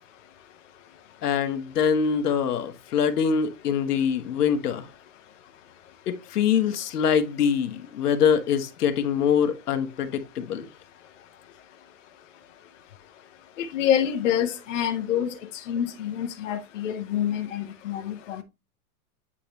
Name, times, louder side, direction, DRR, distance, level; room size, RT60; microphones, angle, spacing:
voice 1, 1.2-4.9 6.1-10.7, left 7 dB, 80° left, 1.2 m, -24 dB
voice 2, 13.6-15.3 15.7-18.4, left 9 dB, 50° left, 0.9 m, -27 dB
8.6 x 3.8 x 3.1 m
supercardioid pair, 180°, 46 cm